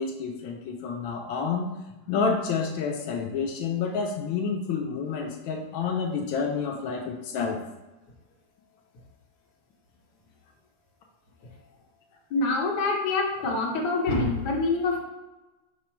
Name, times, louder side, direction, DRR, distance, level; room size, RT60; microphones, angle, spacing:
voice 1, 0.0-1.7 2.1-7.6, left 5 dB, 85° left, 1 dB, 1.4 m, -29 dB
voice 2, 12.3-15.0, left 3 dB, 65° left, -1 dB, 1.4 m, -25 dB
5.3 x 2.0 x 4.4 m, 1.1 s
omnidirectional pair, 2.1 m